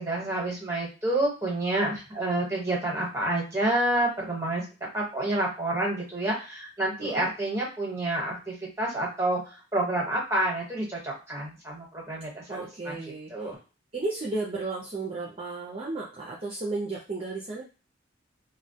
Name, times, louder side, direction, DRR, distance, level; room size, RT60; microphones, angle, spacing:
voice 1, 0.0-4.6 4.9-9.4 9.7-13.0 13.3-13.6, right 1 dB, 15° right, -3 dB, 1.0 m, -28 dB
voice 2, 12.5-13.5 13.9-17.6, right 3 dB, 30° right, -4 dB, 0.5 m, -34 dB
2.1 x 2.1 x 2.7 m, 0.31 s
head